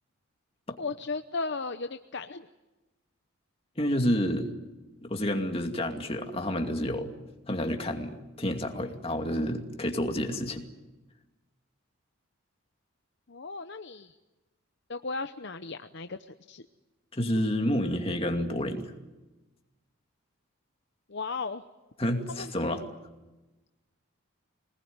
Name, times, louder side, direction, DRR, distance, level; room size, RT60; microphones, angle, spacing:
voice 1, 0.8-2.5 13.3-14.1 14.9-16.2 16.5-16.6 21.1-21.6 22.3-22.5, left 4 dB, 55° left, 8 dB, 0.8 m, -35 dB
voice 2, 3.8-4.5 5.0-7.1 7.5-10.6 17.1-18.9 22.0-22.8, left 1 dB, 25° left, 4 dB, 2.4 m, -29 dB
25.5 x 20.0 x 9.6 m, 1.1 s
head